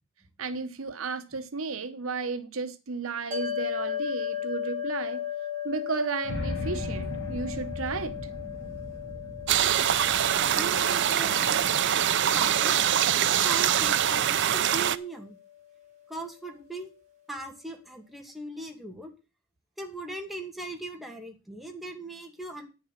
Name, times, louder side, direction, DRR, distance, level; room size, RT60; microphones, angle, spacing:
voice 1, 0.4-5.2 5.6-8.2, right 4 dB, 80° right, 1.0 m, -33 dB
sound 1, 3.3-15.8, left 10 dB, 35° right, 3.3 m, -37 dB
sound 2, 6.2-12.4, left 1 dB, 60° left, 2.4 m, -38 dB
sound 3, 9.5-15.0, right 10 dB, 60° right, 0.6 m, -24 dB
voice 2, 10.6-11.7 12.3-12.9 13.3-15.4 16.1-16.9 17.3-19.1 19.8-22.7, right 2 dB, ahead, 2.2 m, -39 dB
9.9 x 7.0 x 6.5 m
head